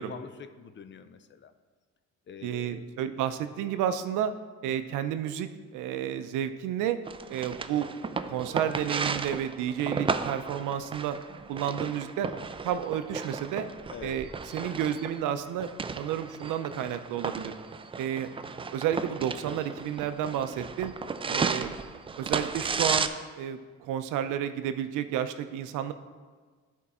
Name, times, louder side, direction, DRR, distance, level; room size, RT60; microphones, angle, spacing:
voice 1, 0.1-1.5 2.3-2.8 4.8-5.0 13.9-14.1 14.6-14.8 18.3-18.4 21.3-21.5, left 7 dB, 40° left, 10 dB, 0.5 m, -45 dB
voice 2, 2.4-4.3 4.6-7.0 7.3-7.9 8.3-11.2 11.5-12.3 12.6-13.7 14.0-15.7 16.0-17.5 18.0-18.3 18.7-20.9 21.2-21.7 22.2-23.1 23.4-25.9, right 10 dB, 90° right, 10 dB, 0.5 m, -31 dB
sound 1, 7.1-23.1, right 5 dB, 20° right, 0.3 m, -34 dB
11.0 x 4.5 x 4.2 m, 1.5 s
cardioid pair, 90°, 30 cm